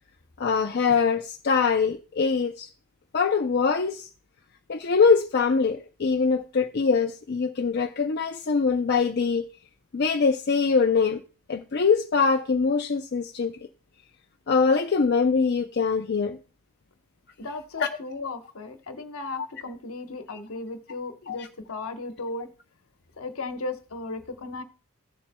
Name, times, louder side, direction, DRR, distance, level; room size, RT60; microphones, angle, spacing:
voice 1, 0.4-2.7 3.1-4.1 4.7-9.5 9.9-11.2 11.5-13.5 14.5-16.4 17.8-17.9 20.3-20.4 21.3-21.4, left 5 dB, 45° left, 0.5 m, -23 dB
voice 2, 17.4-22.5 23.2-24.6, left 3 dB, 70° left, 1.1 m, -36 dB
16.5 x 7.1 x 2.2 m
head